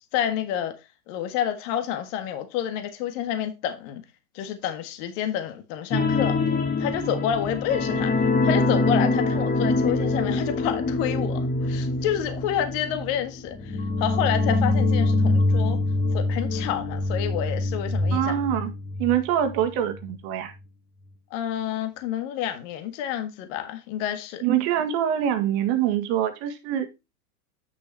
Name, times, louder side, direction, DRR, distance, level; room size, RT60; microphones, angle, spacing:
voice 1, 0.1-0.7 1.1-4.0 4.3-6.4 6.8-15.8 16.1-18.3 21.3-24.4, left 10 dB, 50° left, 1.6 m, -29 dB
sound 1, 5.9-19.2 19.5-19.7 20.0-20.1, left 2 dB, 20° left, 1.7 m, -24 dB
voice 2, 18.1-18.7 19.0-20.5 24.4-27.1, right 10 dB, 50° right, 1.5 m, -24 dB
8.7 x 6.3 x 3.4 m
hypercardioid pair, 100°, 46 cm